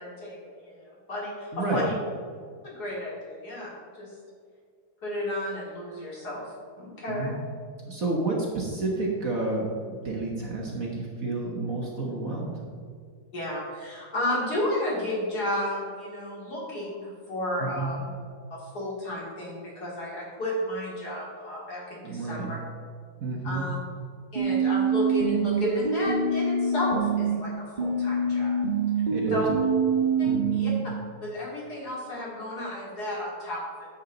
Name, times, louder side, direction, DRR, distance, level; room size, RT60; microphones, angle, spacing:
voice 1, 0.0-2.0 2.6-4.1 5.0-6.4 6.8-7.4 13.3-18.1 18.5-22.6 23.4-23.7 24.3-28.6 29.3-29.6 30.2-30.7 31.2-33.9, left 1 dB, 50° left, -5 dB, 3.0 m, -32 dB
voice 2, 1.5-1.8 7.1-7.3 7.9-12.6 17.6-17.9 22.0-22.5 23.2-23.7 29.0-29.4 30.2-30.6, right 3 dB, 50° right, -2 dB, 1.5 m, -30 dB
sound 1, 24.4-27.4 27.8-30.8, right 4 dB, 30° right, 1.0 m, -25 dB
10.0 x 7.5 x 3.9 m, 2.1 s
omnidirectional pair, 2.2 m